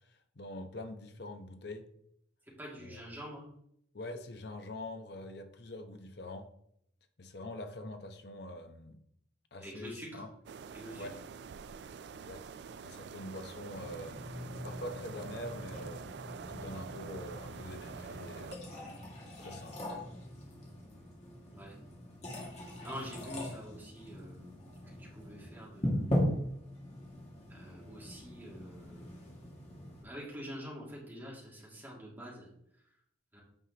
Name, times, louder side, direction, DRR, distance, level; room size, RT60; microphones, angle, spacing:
voice 1, 0.4-1.9 2.8-3.0 3.9-6.5 7.2-9.0 9.5-10.3 11.0-11.2 12.1-12.5 12.8-14.2 14.6-16.1 16.5-18.6 19.4-19.8, left 1 dB, 55° left, 6 dB, 0.9 m, -44 dB
voice 2, 2.6-3.4 9.6-10.2 10.7-11.0 21.5-21.8 22.6-26.1 27.5-29.2 30.0-32.5 33.3-33.4, equal, 10° right, -5 dB, 2.3 m, -46 dB
sound 1, 10.5-18.6, right 6 dB, 60° right, 0.3 m, -46 dB
sound 2, 13.7-30.0, equal, 35° left, 1.9 m, -40 dB
9.1 x 5.6 x 2.9 m, 0.71 s
head